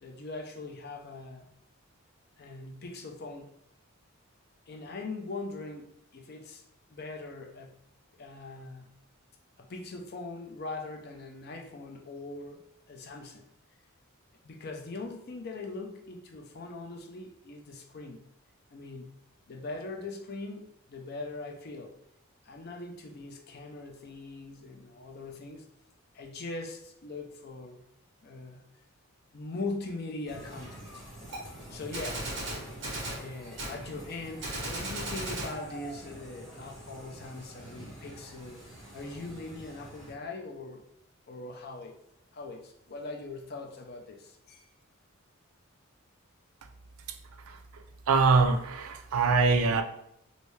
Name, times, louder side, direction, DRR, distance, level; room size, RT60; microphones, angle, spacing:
voice 1, 0.0-1.5 2.4-3.5 4.7-6.6 6.9-7.8 8.2-9.0 9.6-13.5 14.4-18.3 18.7-19.1 19.5-22.0 22.4-25.7 26.1-27.9 28.2-28.7 29.3-31.0 31.7-32.3 33.1-38.6 38.9-40.8 41.3-41.9 42.3-44.7, left 3 dB, 45° left, 0.5 m, -41 dB
sound 1, 30.3-40.1, right 1 dB, ahead, 1.2 m, -47 dB
Gunshot gunfire, 31.3-31.4 31.9-33.2 33.6-33.8 34.4-35.5, right 1 dB, 55° right, 1.3 m, -35 dB
voice 2, 48.1-49.8, right 4 dB, 75° right, 0.4 m, -23 dB
3.2 x 2.7 x 3.1 m
head